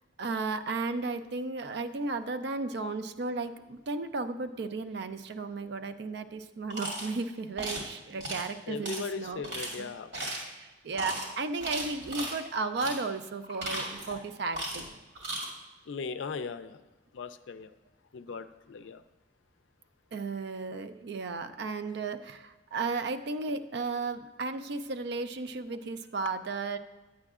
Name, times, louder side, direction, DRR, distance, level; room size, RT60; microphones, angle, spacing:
voice 1, 0.2-9.4 9.8-9.9 10.6-14.8 18.3-18.4 20.1-26.8, right 3 dB, 60° right, 10 dB, 0.4 m, -34 dB
sound 1, 6.7-7.1 7.6-7.9 8.2-8.4 8.8-9.0 9.4-9.7 10.1-10.5 10.9-11.3 11.6-12.4 12.8-13.0 13.4-14.2 14.5-14.9 15.2-15.5, right 1 dB, 80° right, 2.4 m, -35 dB
voice 2, 8.7-10.1 15.9-16.8 17.1-17.7 18.1-19.0, left 5 dB, 75° left, 11 dB, 0.4 m, -38 dB
9.7 x 8.7 x 2.4 m, 1.2 s
head